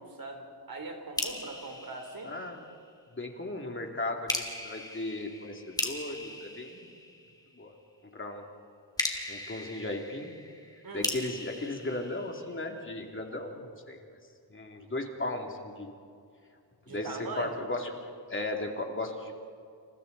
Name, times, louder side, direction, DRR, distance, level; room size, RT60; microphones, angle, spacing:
voice 1, 0.0-2.4 10.8-11.1 16.9-17.6, right 3 dB, 50° right, 3 dB, 3.9 m, -41 dB
sound 1, 1.2-2.9 4.3-7.6 9.0-12.9, left 1 dB, 10° left, 2.3 m, -38 dB
voice 2, 2.2-2.6 3.1-6.9 7.5-7.7 8.1-8.5 9.3-10.3 10.9-14.0 14.5-15.9 16.9-19.4, left 2 dB, 25° left, 2 dB, 2.8 m, -36 dB
29.5 x 28.5 x 4.1 m, 2.3 s
wide cardioid pair, 125°, 44 cm